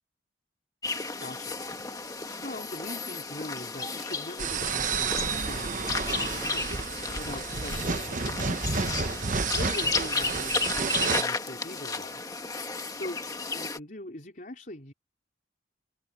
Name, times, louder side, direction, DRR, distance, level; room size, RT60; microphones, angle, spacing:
sound 1, 0.8-13.8, left 4 dB, 20° left, 1.6 m, -33 dB
voice 1, 1.2-1.6 2.4-8.9 9.5-12.2 12.9-13.2 13.5-14.9, left 1 dB, 45° left, 4.6 m, -42 dB
sound 2, 4.4-11.2, right 5 dB, 45° right, 1.0 m, -30 dB
open air
head